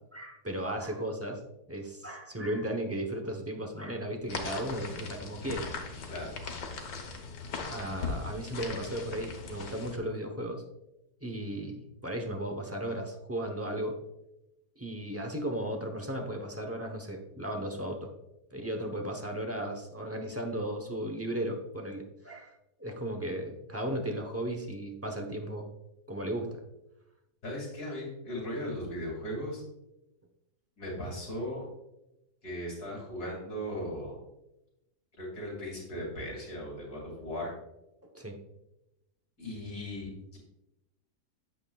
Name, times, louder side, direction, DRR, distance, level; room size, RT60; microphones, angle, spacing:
voice 1, 0.1-1.4 1.7-5.7 7.7-10.6 11.2-14.0 14.8-18.1 18.5-22.5 22.8-25.7 26.1-26.6 38.1-38.4, right 1 dB, 20° right, 2 dB, 0.3 m, -35 dB
sound 1, 4.3-10.0, left 4 dB, 90° left, 1.7 m, -39 dB
voice 2, 6.1-6.4 27.4-29.6 30.8-31.7 32.4-34.2 35.2-37.5 39.4-40.4, equal, 65° left, -3 dB, 2.9 m, -37 dB
8.6 x 7.7 x 2.3 m, 0.91 s
omnidirectional pair, 1.8 m